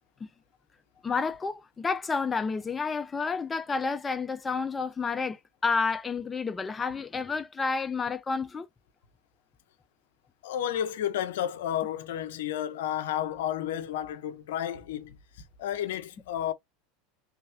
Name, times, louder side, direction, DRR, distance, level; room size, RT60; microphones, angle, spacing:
voice 1, 1.0-8.7, left 4 dB, 20° left, 0.3 m, -30 dB
voice 2, 10.4-15.2 15.6-16.5, left 10 dB, 75° left, 0.6 m, -31 dB
3.1 x 2.3 x 3.4 m
hypercardioid pair, 90°, 0 cm